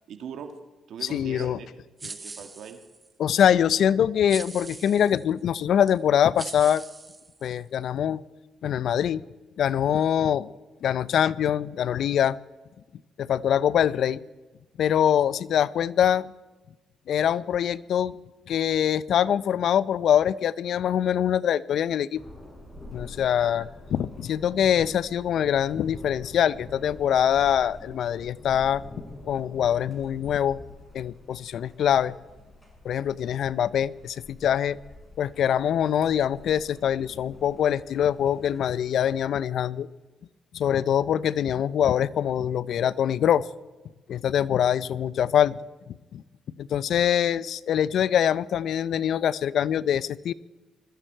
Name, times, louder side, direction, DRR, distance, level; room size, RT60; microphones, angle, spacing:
voice 1, 0.1-0.5 0.9-1.7 2.0-2.8 23.4-23.5, right 7 dB, 75° right, 7 dB, 1.6 m, -40 dB
voice 2, 1.0-1.6 3.2-6.8 7.4-8.2 8.6-9.2 9.6-10.5 10.8-12.4 13.2-14.2 14.8-16.3 17.1-18.2 18.5-22.2 22.9-28.8 29.3-30.6 30.9-32.1 32.8-34.8 35.2-39.9 40.5-43.5 44.1-45.6 45.9-46.2 46.6-50.3, left 9 dB, 70° left, 18 dB, 0.5 m, -24 dB
sound 1, 2.0-3.1 4.3-5.2 5.9-6.0 6.4-7.8, right 3 dB, 25° right, 1.1 m, -41 dB
Thunder, 22.2-39.2, left 2 dB, 10° left, 5.9 m, -47 dB
21.5 x 13.5 x 4.5 m, 1.2 s
cardioid pair, 90°, 0 cm